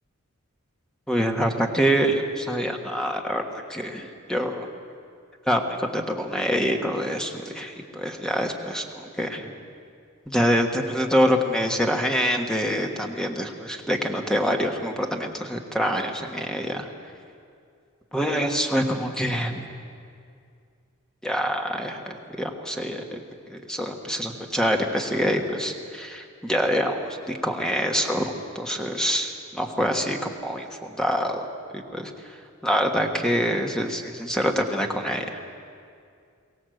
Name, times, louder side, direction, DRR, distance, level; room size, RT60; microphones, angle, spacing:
voice 1, 1.1-4.7 5.5-9.6 10.3-16.9 18.1-19.6 21.2-23.2 23.5-31.5 31.7-35.4, equal, 5° left, 3 dB, 1.4 m, -26 dB
22.5 x 16.5 x 7.9 m, 2.3 s
head